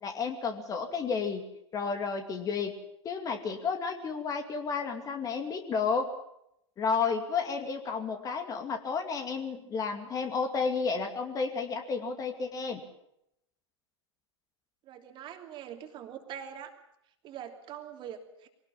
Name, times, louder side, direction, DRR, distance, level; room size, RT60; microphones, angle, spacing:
voice 1, 0.0-1.4 1.7-2.7 3.0-6.1 6.8-12.8, left 5 dB, 25° left, 6 dB, 2.5 m, -31 dB
voice 2, 14.8-16.7 17.2-18.5, right 9 dB, 30° right, 5 dB, 2.9 m, -43 dB
23.5 x 18.5 x 7.4 m, 0.80 s
figure-of-eight pair, 100°, 15 cm